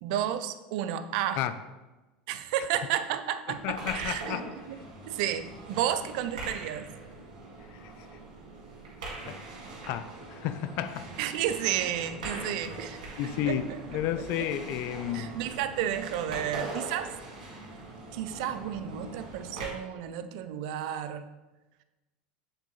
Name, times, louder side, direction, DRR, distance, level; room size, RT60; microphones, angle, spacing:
voice 1, 0.0-1.4 2.3-4.8 5.1-6.9 11.2-13.0 13.5-13.6 14.4-14.5 15.1-17.1 18.1-21.3, right 10 dB, 70° right, 11 dB, 0.5 m, -32 dB
voice 2, 3.5-4.4 7.8-7.9 9.3-9.4 9.9-11.1 12.3-12.5 13.2-15.3, left 11 dB, 60° left, 12 dB, 0.5 m, -32 dB
sound 1, 3.5-19.7, right 2 dB, 90° right, 2.0 m, -42 dB
7.9 x 3.6 x 4.0 m, 1.1 s
supercardioid pair, 100°, 4 cm